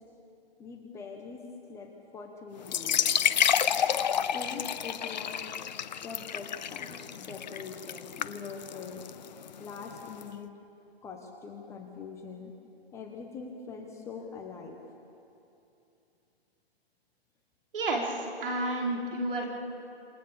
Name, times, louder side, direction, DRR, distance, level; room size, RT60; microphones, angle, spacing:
voice 1, 0.6-1.4 1.7-3.0 4.3-5.5 6.0-9.0 9.6-10.5 11.0-12.5 12.9-14.8, left 5 dB, 10° left, 2 dB, 1.2 m, -43 dB
sound 1, 2.6-10.2, left 8 dB, 40° left, 0.8 m, -30 dB
voice 2, 17.7-19.5, right 2 dB, 55° right, 0 dB, 5.4 m, -31 dB
27.5 x 27.0 x 7.2 m, 2.8 s
hypercardioid pair, 150°, 32 cm